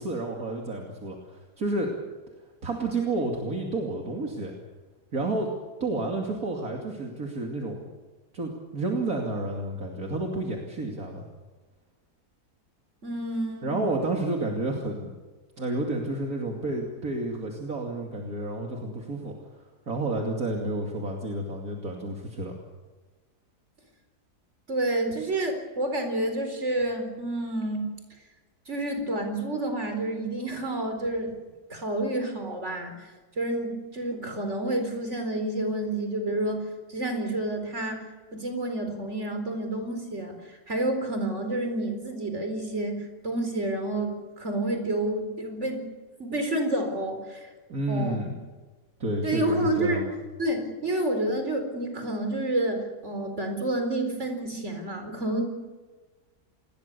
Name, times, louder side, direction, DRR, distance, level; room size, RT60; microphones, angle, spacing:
voice 1, 0.0-2.0 2.6-4.6 5.1-5.5 5.8-7.9 8.3-11.3 13.6-15.1 15.6-22.6 47.7-48.3 49.0-50.1, right 2 dB, 60° right, 1 dB, 3.1 m, -30 dB
voice 2, 13.0-13.7 24.7-27.9 28.7-31.3 31.7-33.1 33.3-38.0 38.3-45.8 46.2-47.5 47.9-48.3 49.2-50.0 50.4-55.5, right 1 dB, 45° right, 5 dB, 4.7 m, -29 dB
28.5 x 21.0 x 6.9 m, 1.3 s
omnidirectional pair, 1.8 m